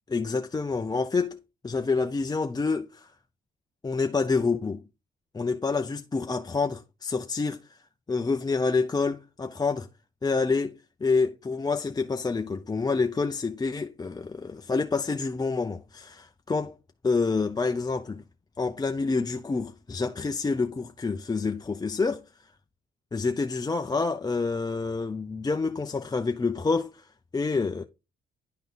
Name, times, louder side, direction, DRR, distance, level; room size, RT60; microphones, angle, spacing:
voice 1, 0.1-3.1 3.8-4.8 5.3-7.8 8.1-9.9 10.2-16.8 17.0-18.2 18.6-22.2 23.1-27.8, left 4 dB, 20° left, 0.5 m, -28 dB
10.5 x 3.7 x 4.0 m
cardioid pair, 90°, 20 cm